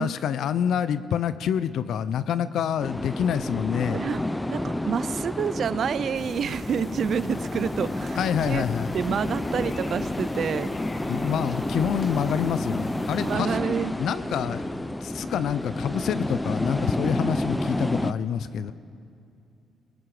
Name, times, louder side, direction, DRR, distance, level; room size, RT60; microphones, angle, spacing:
voice 1, 0.0-4.0 8.2-8.9 11.1-13.6 14.0-14.7 15.0-18.7, left 8 dB, 70° left, 14 dB, 0.7 m, -27 dB
sound 1, 2.8-18.1, left 1 dB, 10° left, 0.7 m, -30 dB
voice 2, 4.5-8.2 8.5-8.6 8.9-10.7 13.2-13.9, right 7 dB, 55° right, 16 dB, 0.6 m, -28 dB
sound 2, 6.1-13.4, left 3 dB, 35° left, 1.5 m, -39 dB
29.0 x 20.5 x 5.0 m, 2.6 s
cardioid pair, 90°, 0 cm